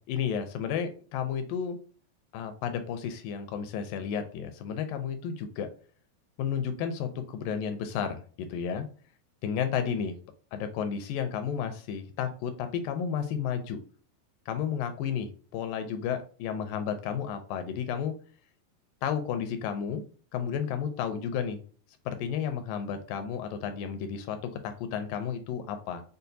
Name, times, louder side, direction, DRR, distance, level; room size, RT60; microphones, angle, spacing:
voice 1, 0.1-1.8 2.3-5.7 6.4-8.9 9.4-10.2 10.5-13.8 14.5-18.1 19.0-20.0 20.3-21.6 22.1-26.0, left 7 dB, 80° left, 8 dB, 2.0 m, -32 dB
6.5 x 2.2 x 2.6 m, 0.41 s
omnidirectional pair, 4.3 m